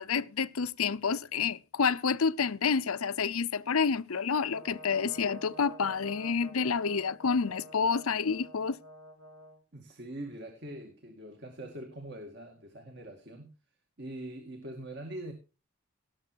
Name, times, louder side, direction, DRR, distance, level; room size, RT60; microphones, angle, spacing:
voice 1, 0.0-8.8, left 5 dB, 90° left, 0.7 m, -29 dB
Brass instrument, 4.4-9.6, equal, 90° right, 4.9 m, -49 dB
voice 2, 9.7-13.5 14.0-15.3, right 1 dB, 50° right, 2.3 m, -43 dB
18.5 x 7.0 x 4.6 m
head